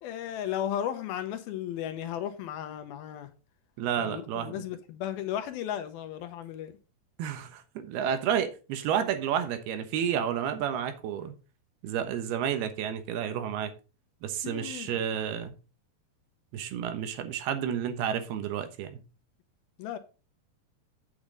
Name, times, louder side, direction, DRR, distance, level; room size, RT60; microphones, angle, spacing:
voice 1, 0.0-3.3 4.0-6.7 14.4-15.0 19.8-20.0, left 10 dB, 75° left, 2.5 m, -35 dB
voice 2, 3.8-4.6 7.2-11.3 11.8-13.7 14.2-15.5 16.5-19.0, right 9 dB, 75° right, 3.0 m, -31 dB
8.6 x 8.1 x 3.8 m
omnidirectional pair, 4.7 m